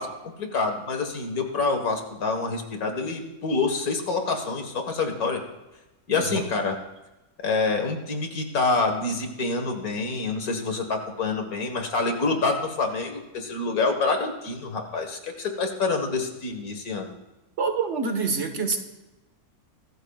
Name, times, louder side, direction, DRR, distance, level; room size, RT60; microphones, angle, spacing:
voice 1, 0.0-5.4 6.1-6.7 7.4-17.1, left 3 dB, 70° left, 4 dB, 2.1 m, -27 dB
voice 2, 6.1-6.5 17.6-18.8, right 4 dB, 50° right, 5 dB, 1.6 m, -26 dB
24.0 x 14.0 x 2.4 m, 1.0 s
omnidirectional pair, 1.6 m